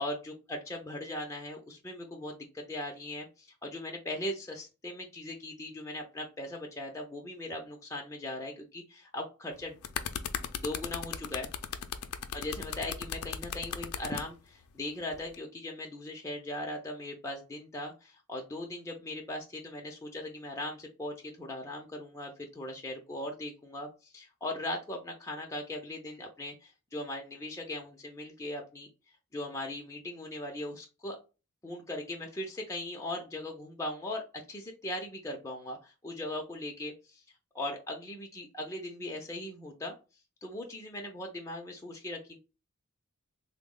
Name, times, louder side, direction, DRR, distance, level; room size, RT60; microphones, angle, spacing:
voice 1, 0.0-9.8 10.5-11.5 12.3-28.9 29.3-31.2 31.6-37.2 37.5-39.9 40.4-42.4, left 1 dB, 15° left, 0 dB, 0.5 m, -39 dB
sound 1, 9.5-14.2 15.1-15.3, left 8 dB, 75° left, 0.4 m, -37 dB
3.4 x 2.0 x 3.6 m, 0.30 s
head